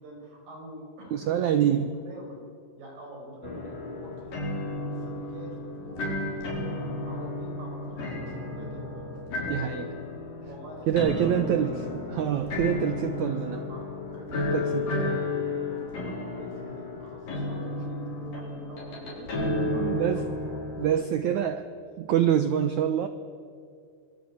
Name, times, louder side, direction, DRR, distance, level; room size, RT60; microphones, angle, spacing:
voice 1, 0.0-1.4 2.0-2.4 2.8-6.6 7.1-9.1 10.4-11.9 13.1-20.6, right 1 dB, 60° right, 0 dB, 7.3 m, -45 dB
voice 2, 1.1-1.9 9.5-10.0 10.9-13.6 14.5-14.9 19.5-20.3 20.8-21.7 22.0-23.1, right 9 dB, 75° right, 10 dB, 1.8 m, -26 dB
sound 1, 3.4-21.0, left 2 dB, 55° left, 6.6 m, -33 dB
26.5 x 23.5 x 8.7 m, 2.3 s
omnidirectional pair, 4.6 m